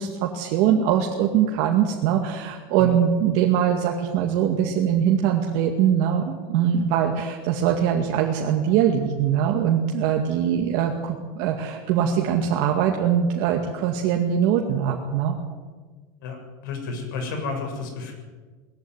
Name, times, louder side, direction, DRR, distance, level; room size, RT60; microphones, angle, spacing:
voice 1, 0.0-15.4, right 9 dB, 50° right, 1 dB, 2.1 m, -22 dB
voice 2, 16.6-18.1, left 4 dB, 70° left, 4 dB, 7.2 m, -31 dB
20.0 x 15.0 x 9.7 m, 1.4 s
supercardioid pair, 165°, 11 cm